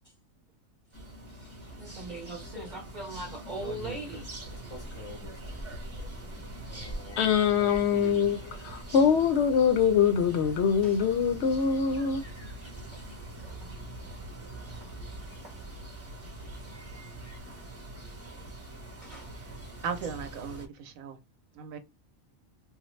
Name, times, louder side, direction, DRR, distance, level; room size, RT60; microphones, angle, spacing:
sound 1, 0.9-20.7, right 1 dB, 10° right, 0.9 m, -44 dB
voice 1, 1.3-4.3 6.6-6.9 10.8-11.0 12.9-13.7 14.6-14.9 15.3-15.6 18.3-18.4 19.0-19.3, right 2 dB, 40° right, 0.8 m, -42 dB
sound 2, 3.5-17.4, equal, 20° left, 0.4 m, -47 dB
voice 2, 7.2-12.2, left 7 dB, 65° left, 0.7 m, -24 dB
voice 3, 19.8-21.2 21.5-21.8, right 6 dB, 75° right, 1.0 m, -37 dB
3.6 x 2.0 x 3.1 m
omnidirectional pair, 1.4 m